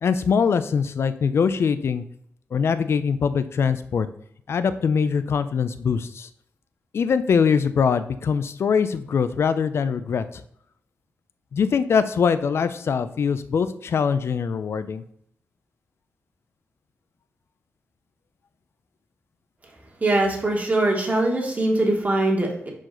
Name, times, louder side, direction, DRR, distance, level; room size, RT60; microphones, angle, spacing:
voice 1, 0.0-2.0 2.5-4.1 4.5-6.3 6.9-10.2 11.5-15.0, left 6 dB, 65° left, 12 dB, 0.5 m, -22 dB
voice 2, 20.0-22.7, right 2 dB, 35° right, 0 dB, 1.7 m, -22 dB
5.9 x 5.0 x 3.8 m, 0.67 s
wide cardioid pair, 95°, 5 cm